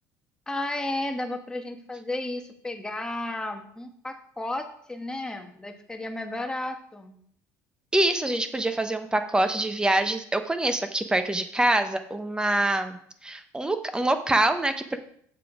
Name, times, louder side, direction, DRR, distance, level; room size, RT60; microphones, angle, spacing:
voice 1, 0.5-7.2, left 2 dB, 10° left, 5 dB, 1.2 m, -33 dB
voice 2, 7.9-15.0, right 1 dB, 10° right, 9 dB, 0.9 m, -25 dB
7.4 x 7.3 x 4.9 m, 0.65 s
cardioid pair, 115°, 8 cm